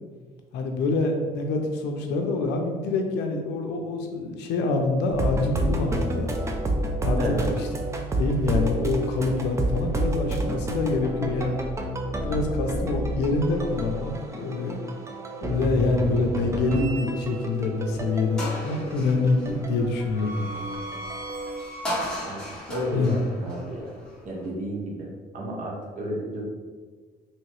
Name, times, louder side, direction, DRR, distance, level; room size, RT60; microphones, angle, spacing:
voice 1, 0.5-6.3 7.0-7.7 8.2-11.6 12.2-14.8 15.4-20.4 22.9-23.2, left 3 dB, 85° left, 3 dB, 0.5 m, -26 dB
sound 1, 5.1-21.6, right 1 dB, 15° right, 0.4 m, -30 dB
voice 2, 7.2-7.5 22.3-22.4 22.7-23.9 24.2-25.1 25.3-26.4, equal, 50° right, -2 dB, 0.9 m, -31 dB
sound 2, 16.7-17.6 18.0-18.1 18.4-24.5, equal, 5° left, 1.2 m, -36 dB
3.0 x 2.8 x 3.0 m, 1.5 s
cardioid pair, 110°, 17 cm